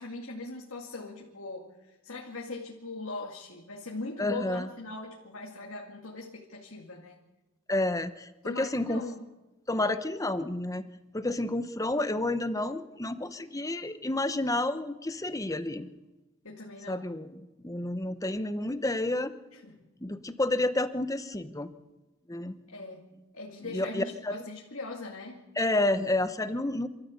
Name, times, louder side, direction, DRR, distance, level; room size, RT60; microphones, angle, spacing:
voice 1, 0.0-7.2 8.4-9.3 16.4-17.1 19.5-19.8 22.7-23.1 23.3-25.4, left 2 dB, 70° left, -1 dB, 2.3 m, -40 dB
voice 2, 4.2-4.7 7.7-9.0 9.7-10.8 11.1-15.9 16.9-19.3 20.0-21.7 22.3-22.5 23.7-24.4 25.6-26.9, left 2 dB, 15° left, 11 dB, 0.9 m, -30 dB
26.5 x 14.0 x 8.3 m, 1.1 s
head